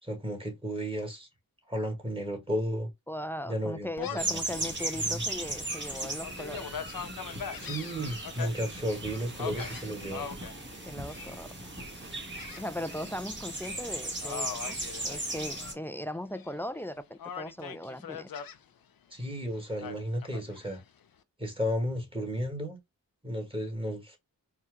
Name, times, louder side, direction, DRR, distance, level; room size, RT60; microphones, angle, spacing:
voice 1, 0.0-1.3 1.7-2.9 3.5-4.4 4.9-5.2 7.6-10.3 19.1-20.8 21.4-22.8 23.2-24.2, equal, 15° right, 1.8 m, -33 dB
voice 2, 3.1-6.7 7.1-7.2 10.9-11.5 12.6-14.8 15.0-18.3, left 1 dB, 5° left, 0.3 m, -38 dB
Gull seagull, 4.0-4.4 4.9-5.0 5.5-8.5 9.4-10.5 11.1-11.5 12.4-13.1 13.4-13.7 14.2-15.8 16.1-16.8 17.2-18.6 19.8-20.8, left 7 dB, 75° left, 0.6 m, -41 dB
sound 1, 4.2-15.7, right 2 dB, 30° right, 1.5 m, -37 dB
4.4 x 2.3 x 3.6 m
cardioid pair, 55°, 35 cm